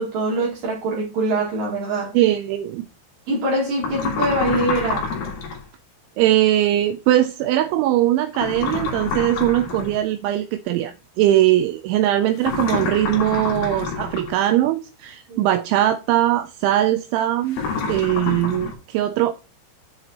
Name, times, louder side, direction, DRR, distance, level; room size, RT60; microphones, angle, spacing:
voice 1, 0.0-2.2 3.3-5.2 15.3-15.4, right 2 dB, 65° right, 4.0 m, -24 dB
voice 2, 2.1-2.9 6.2-17.6 17.9-19.3, right 13 dB, 85° right, 2.7 m, -20 dB
sound 1, 3.8-5.6 8.3-10.0 12.4-14.4 17.5-18.7, left 5 dB, 55° left, 3.1 m, -27 dB
8.9 x 8.1 x 2.9 m
omnidirectional pair, 5.6 m